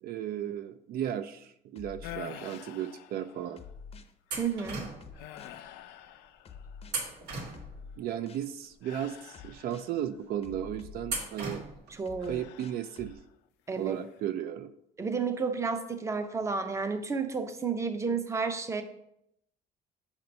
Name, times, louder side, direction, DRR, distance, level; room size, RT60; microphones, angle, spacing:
voice 1, 0.0-3.6 8.0-11.6 12.2-13.2 13.7-14.7, right 10 dB, 65° right, 11 dB, 0.4 m, -35 dB
sound 1, 1.8-2.7 3.6-4.1 4.6-5.6 6.5-6.9 7.5-8.5 9.3-9.9 10.4-11.4 12.1-13.2, left 6 dB, 35° left, 0.6 m, -48 dB
sound 2, 2.0-3.7 4.3-4.6 5.1-7.0 8.8-10.2 12.2-13.3 13.7-14.2, left 12 dB, 90° left, 0.4 m, -48 dB
sound 3, 4.3-5.2 6.9-8.0 11.0-12.0, right 3 dB, 85° right, 1.5 m, -37 dB
voice 2, 4.4-4.9 11.9-12.4 13.7-14.0 15.0-18.8, right 5 dB, 15° right, 8 dB, 0.6 m, -31 dB
6.7 x 2.9 x 5.2 m, 0.77 s
cardioid pair, 110°, 17 cm